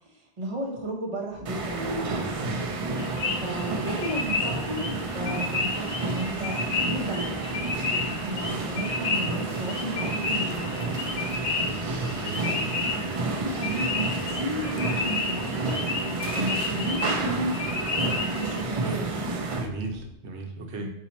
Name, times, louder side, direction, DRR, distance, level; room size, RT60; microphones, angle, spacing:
voice 1, 0.1-2.1 3.4-7.4 8.0-11.1 12.4-15.5 16.3-17.6 18.0-19.3 20.7-20.9, right 1 dB, 30° right, -3 dB, 1.0 m, -34 dB
sound 1, 1.3-20.1, right 1 dB, 5° right, 0.7 m, -47 dB
sound 2, 1.4-19.7, right 3 dB, 55° right, 0.4 m, -30 dB
sound 3, 3.0-18.6, left 4 dB, 85° left, 0.9 m, -32 dB
voice 2, 12.0-12.6 19.5-20.9, right 3 dB, 80° right, 2 dB, 1.0 m, -35 dB
4.0 x 2.7 x 4.2 m, 0.76 s
omnidirectional pair, 1.1 m